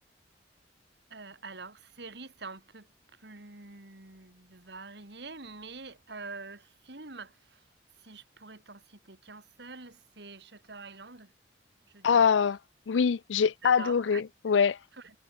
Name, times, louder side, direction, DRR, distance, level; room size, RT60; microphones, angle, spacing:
voice 1, 1.1-7.6 8.0-11.3 11.9-12.4 13.6-14.2 15.0-15.1, right 3 dB, 65° right, 2.9 m, -46 dB
voice 2, 12.0-12.6 12.9-14.8, left 6 dB, 85° left, 0.4 m, -24 dB
head